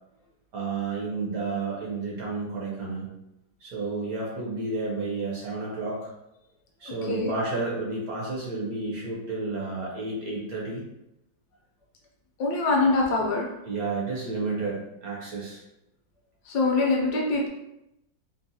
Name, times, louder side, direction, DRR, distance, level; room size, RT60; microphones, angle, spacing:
voice 1, 0.5-3.1 3.6-6.1 6.8-10.8 13.7-15.6, right 3 dB, 65° right, -4 dB, 1.0 m, -31 dB
voice 2, 12.4-13.5 16.5-17.5, left 3 dB, 70° left, -1 dB, 1.0 m, -24 dB
3.9 x 2.0 x 2.6 m, 0.86 s
omnidirectional pair, 2.0 m